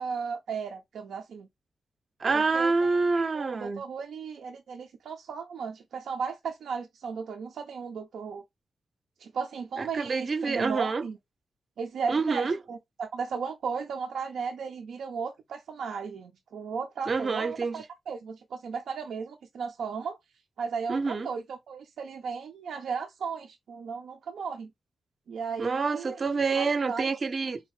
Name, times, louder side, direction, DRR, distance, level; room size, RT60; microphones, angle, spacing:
voice 1, 0.0-1.5 2.3-3.0 3.3-8.4 9.2-11.2 11.8-20.2 20.6-24.7 25.3-26.2 26.5-27.0, right 5 dB, 90° right, 0.5 m, -35 dB
voice 2, 2.2-3.8 9.8-11.0 12.1-12.6 17.1-17.8 20.9-21.3 25.6-27.6, right 4 dB, 40° right, 0.5 m, -27 dB
3.9 x 2.7 x 3.1 m
wide cardioid pair, 140°, 0 cm